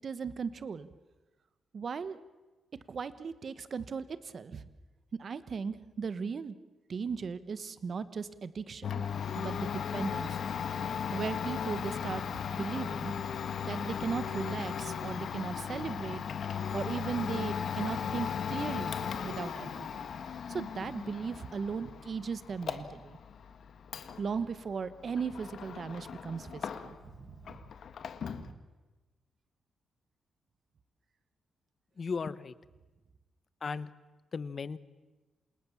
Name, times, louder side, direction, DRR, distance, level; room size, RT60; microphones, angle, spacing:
voice 1, 0.0-0.9 1.7-2.2 2.9-4.6 5.2-6.6 6.9-9.0 9.4-10.4 11.1-13.1 13.6-16.2 16.7-19.0 19.2-20.1 20.5-23.2 24.2-27.6 28.3-28.6, right 5 dB, 35° right, 14 dB, 1.2 m, -37 dB
Domestic sounds home sounds, 8.8-27.2 27.4-28.5, left 7 dB, 55° left, 1.6 m, -37 dB
voice 2, 32.0-32.5 33.6-33.9 34.3-34.8, left 5 dB, 35° left, 16 dB, 1.0 m, -35 dB
28.0 x 27.5 x 7.2 m, 1.2 s
wide cardioid pair, 175°, 0 cm